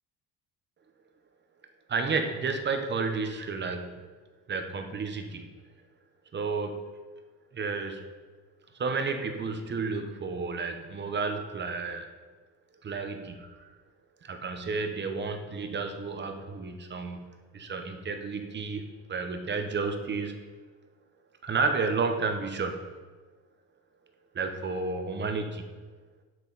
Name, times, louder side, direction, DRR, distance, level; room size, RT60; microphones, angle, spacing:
voice 1, 1.9-4.1 4.5-5.5 6.3-6.8 7.5-8.0 8.8-12.1 12.8-13.7 14.2-20.4 21.4-22.8 24.3-25.6, right 4 dB, 30° right, 6 dB, 0.8 m, -31 dB
7.9 x 6.8 x 3.9 m, 1.4 s
cardioid pair, 135°, 39 cm